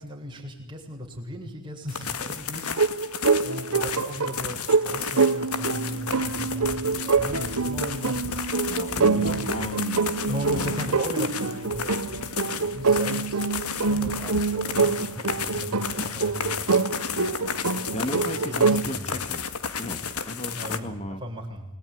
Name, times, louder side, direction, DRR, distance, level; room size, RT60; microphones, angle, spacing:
voice 1, 0.0-8.2 9.0-9.8 10.2-17.0 17.6-19.1 20.6-21.6, equal, 20° right, 0 dB, 7.4 m, -37 dB
sound 1, 1.9-20.8, left 6 dB, 85° left, 2.1 m, -33 dB
sound 2, 2.8-18.8, right 4 dB, 85° right, 1.3 m, -25 dB
voice 2, 8.7-11.0 12.3-12.4 17.1-17.4 17.6-19.5 19.8-20.0 20.3-21.2, left 1 dB, 30° left, 9 dB, 2.6 m, -36 dB
29.0 x 20.5 x 9.9 m, 0.77 s
head